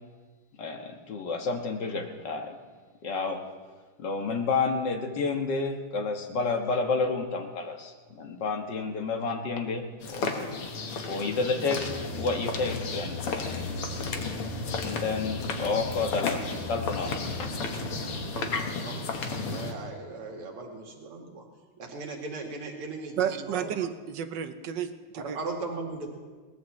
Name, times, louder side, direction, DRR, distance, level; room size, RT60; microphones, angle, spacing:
voice 1, 0.6-2.6 3.0-3.4 4.0-9.8 10.1-10.4 11.1-11.8 12.2-13.7 14.8-17.1 17.4-17.5 18.5-18.6, left 4 dB, 55° left, 3 dB, 1.9 m, -30 dB
sound 1, 10.0-19.7, left 4 dB, 80° left, 2.3 m, -34 dB
sound 2, 11.7-18.2, left 2 dB, 15° right, 2.7 m, -39 dB
voice 2, 19.4-21.4 21.8-23.2 23.4-23.7 25.1-26.1, right 3 dB, 85° right, 1 dB, 2.8 m, -38 dB
voice 3, 23.2-25.4, right 9 dB, 65° right, 10 dB, 1.2 m, -31 dB
22.0 x 18.5 x 3.2 m, 1.4 s
omnidirectional pair, 2.4 m